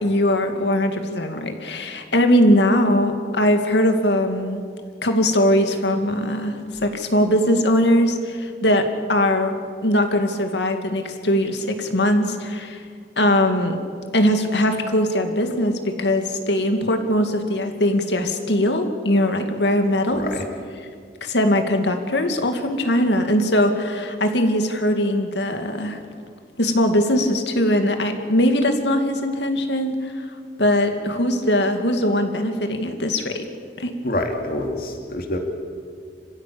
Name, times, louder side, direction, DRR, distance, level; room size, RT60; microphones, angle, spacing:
voice 1, 0.0-4.6 5.0-9.6 9.8-12.8 13.2-13.8 14.1-20.2 21.2-26.0 26.6-30.2 30.6-33.4 33.8-33.9, left 1 dB, 80° left, 6 dB, 2.4 m, -20 dB
voice 2, 20.1-20.5 34.0-35.4, left 1 dB, 55° left, 3 dB, 2.5 m, -26 dB
27.0 x 15.5 x 8.7 m, 2.1 s
head